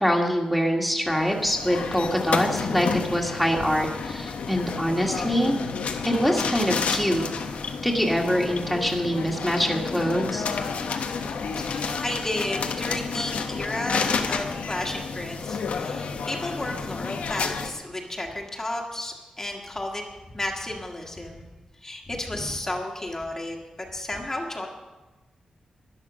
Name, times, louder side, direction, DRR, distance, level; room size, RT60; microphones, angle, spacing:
voice 1, 0.0-5.5 6.0-7.2 7.8-10.5, equal, ahead, 0 dB, 1.7 m, -24 dB
sound 1, 1.1-17.7, left 5 dB, 85° left, 1.1 m, -30 dB
voice 2, 11.5-20.0 20.3-21.5 21.8-23.6 23.9-24.7, left 1 dB, 20° left, -1 dB, 1.6 m, -32 dB
12.0 x 10.5 x 6.2 m, 1.2 s
wide cardioid pair, 105°, 2 cm